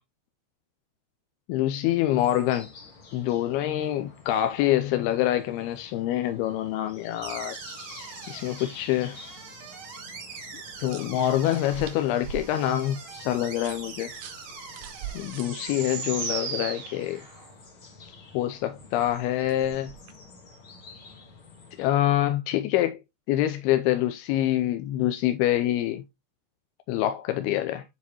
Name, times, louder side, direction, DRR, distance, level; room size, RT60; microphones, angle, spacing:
voice 1, 1.5-2.7 3.1-7.6 8.3-9.2 10.8-14.1 15.1-17.2 18.3-19.9 21.8-23.0 23.3-26.0 26.9-27.8, left 13 dB, 85° left, 2.6 m, -26 dB
sound 1, 2.1-21.9, left 4 dB, 55° left, 1.5 m, -50 dB
sound 2, 7.2-17.5, right 5 dB, 55° right, 4.8 m, -39 dB
sound 3, 10.3-16.2 18.8-20.3, right 10 dB, 85° right, 3.2 m, -44 dB
9.6 x 4.2 x 3.0 m
omnidirectional pair, 4.6 m